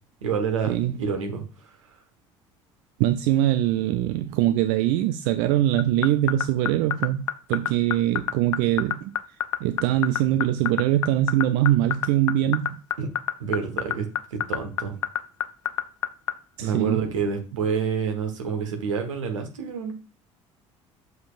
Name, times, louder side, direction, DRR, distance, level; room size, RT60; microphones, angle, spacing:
voice 1, 0.2-1.7 13.0-13.1 13.4-14.9 16.6-19.9, right 6 dB, 75° right, 1.2 m, -28 dB
voice 2, 3.0-9.1 9.6-12.8 16.6-17.0, right 13 dB, 55° right, 0.4 m, -23 dB
sound 1, 5.8-16.3, left 11 dB, 75° left, 0.5 m, -24 dB
7.7 x 5.2 x 2.4 m
figure-of-eight pair, 55°, 16 cm